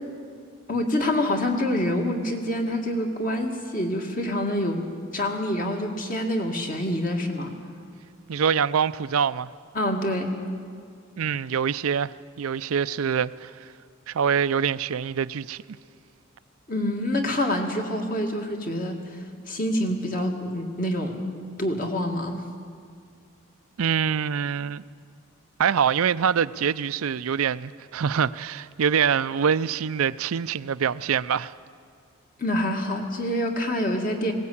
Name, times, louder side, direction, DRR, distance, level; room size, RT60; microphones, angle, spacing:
voice 1, 0.7-4.8 5.1-7.5 9.7-10.3 16.7-22.4 32.4-34.3, left 1 dB, 40° left, 2.1 m, -26 dB
voice 2, 8.3-9.5 11.2-13.7 14.1-15.6 23.8-24.8 25.6-31.5, right 7 dB, 90° right, 0.5 m, -25 dB
20.0 x 17.5 x 8.6 m
head